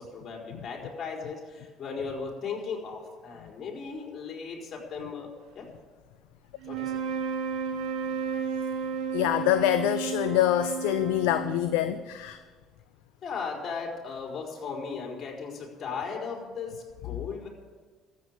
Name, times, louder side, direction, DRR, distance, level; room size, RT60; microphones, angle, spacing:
voice 1, 0.0-5.7 6.6-7.0 13.2-17.5, left 5 dB, 45° left, 0 dB, 4.5 m, -37 dB
sound 1, 6.6-12.1, right 6 dB, 65° right, 1.6 m, -32 dB
voice 2, 9.1-12.4, left 13 dB, 75° left, 11 dB, 0.6 m, -25 dB
13.5 x 8.4 x 9.7 m, 1.4 s
hypercardioid pair, 60°, 0 cm